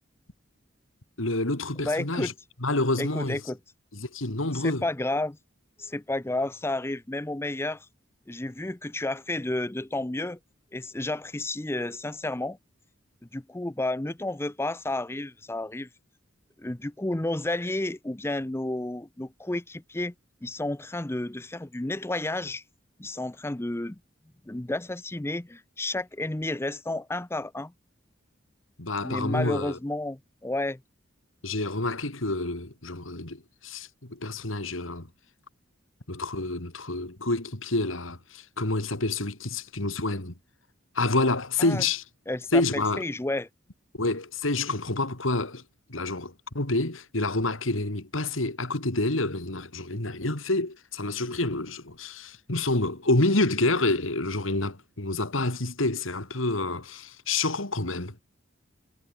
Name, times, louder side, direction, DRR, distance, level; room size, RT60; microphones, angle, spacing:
voice 1, 1.2-2.3 2.6-3.4 3.9-4.8 28.8-29.8 31.4-35.1 36.1-40.3 40.9-42.0 42.5-43.0 43.9-45.6 45.9-58.2, left 2 dB, 90° left, 3.1 m, -28 dB
voice 2, 1.8-2.3 3.0-3.6 4.5-5.4 5.8-7.9 8.3-10.4 10.7-12.6 13.3-15.9 16.6-20.1 20.4-22.6 23.0-24.0 24.5-27.7 29.0-30.8 41.6-41.8 42.3-43.5, left 2 dB, 15° left, 0.6 m, -31 dB
head